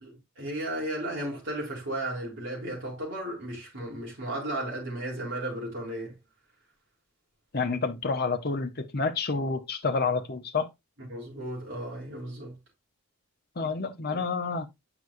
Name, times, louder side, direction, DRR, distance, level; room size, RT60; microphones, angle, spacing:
voice 1, 0.0-6.2 11.1-12.6 14.1-14.2, right 1 dB, 55° right, 3.7 m, -34 dB
voice 2, 7.5-10.7 13.6-14.7, left 4 dB, 45° left, 0.9 m, -29 dB
8.0 x 5.9 x 2.6 m
head